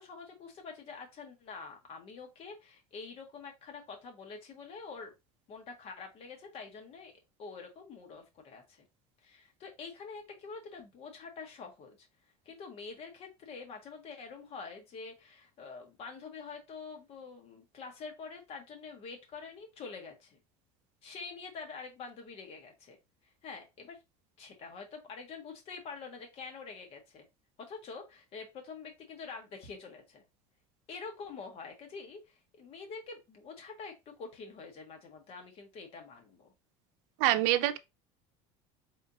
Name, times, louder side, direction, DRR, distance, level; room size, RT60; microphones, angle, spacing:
voice 1, 0.0-5.1 5.5-7.1 7.4-8.8 9.2-12.1 12.4-20.4 21.0-23.0 23.2-24.0 24.4-27.2 27.6-30.2 30.9-36.5, left 4 dB, 40° left, 1.5 m, -46 dB
voice 2, 37.2-37.8, right 14 dB, 70° right, 0.6 m, -25 dB
4.2 x 3.6 x 2.8 m
cardioid pair, 140°, 15 cm